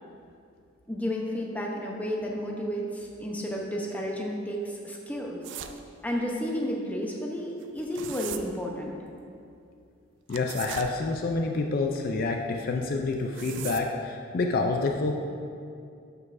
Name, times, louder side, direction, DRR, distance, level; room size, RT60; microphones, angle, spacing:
voice 1, 0.9-5.4 6.0-9.0, equal, 10° left, -1 dB, 0.7 m, -32 dB
sound 1, 5.4-5.8 7.6-8.4 10.3-10.9 13.1-13.9, right 9 dB, 60° right, 0.4 m, -38 dB
voice 2, 10.3-15.1, left 3 dB, 45° left, 3 dB, 0.4 m, -28 dB
12.0 x 5.4 x 2.5 m, 2.5 s
head